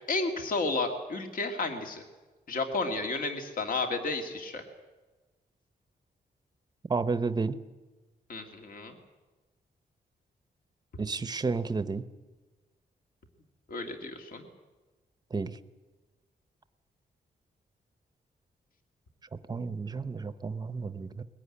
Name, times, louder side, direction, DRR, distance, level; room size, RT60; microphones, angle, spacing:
voice 1, 0.1-2.0 2.5-4.6 8.3-9.0 13.7-14.5, left 3 dB, 55° left, 5 dB, 2.3 m, -32 dB
voice 2, 6.9-7.5 11.0-12.0 15.3-15.6 19.5-21.2, right 4 dB, 25° right, 13 dB, 0.8 m, -31 dB
21.0 x 17.0 x 9.9 m, 1.2 s
wide cardioid pair, 175°, 17 cm